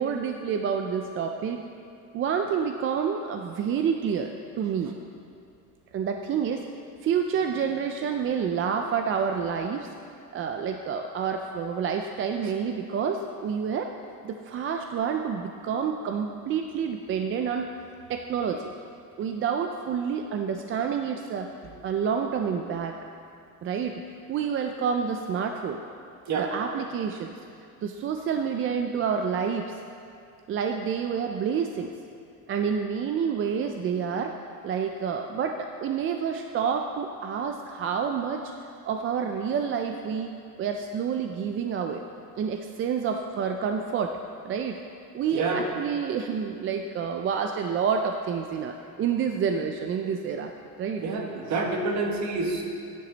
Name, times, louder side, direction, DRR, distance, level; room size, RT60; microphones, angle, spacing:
voice 1, 0.0-1.6 2.1-4.9 5.9-6.6 7.0-9.9 10.3-13.9 14.2-17.7 18.1-18.7 19.2-21.5 21.8-23.0 23.6-24.0 24.3-25.8 26.4-27.3 27.8-29.8 30.5-31.9 32.5-38.4 38.9-42.1 42.4-44.2 44.4-44.8 45.1-50.5 50.8-51.0, right 7 dB, 40° right, 5 dB, 0.4 m, -28 dB
voice 2, 45.3-45.7 51.0-52.6, right 3 dB, 55° right, 1 dB, 1.6 m, -28 dB
12.5 x 10.0 x 4.0 m, 2.5 s
cardioid pair, 160°, 33 cm